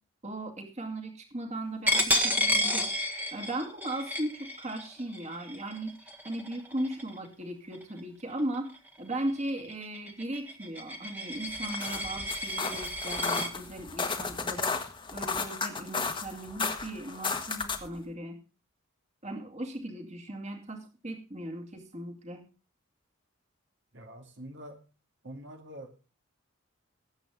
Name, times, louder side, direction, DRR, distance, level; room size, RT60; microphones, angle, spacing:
voice 1, 0.2-3.0 3.3-14.8 15.1-18.4 19.2-22.4, right 1 dB, 35° right, 4 dB, 2.4 m, -37 dB
Coin (dropping), 1.9-7.3 7.7-8.0 8.4-13.5, equal, 10° right, 1.6 m, -32 dB
sound 1, 11.5-18.0, left 4 dB, 25° left, 1.5 m, -34 dB
voice 2, 23.9-24.8 25.2-26.1, right 1 dB, 60° right, 3 dB, 2.2 m, -45 dB
20.0 x 8.7 x 3.6 m, 0.33 s
head